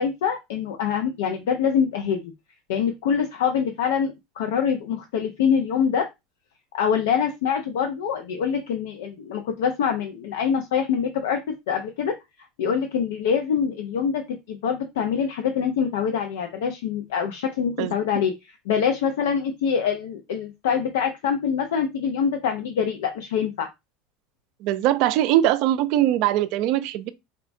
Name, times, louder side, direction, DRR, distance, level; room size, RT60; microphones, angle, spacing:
voice 1, 0.0-2.3 2.7-6.1 6.7-11.4 11.7-12.1 12.6-23.7, left 7 dB, 80° left, 0.4 m, -25 dB
voice 2, 24.6-27.1, right 13 dB, 65° right, 0.4 m, -21 dB
4.3 x 2.1 x 2.5 m
supercardioid pair, 105°, 0 cm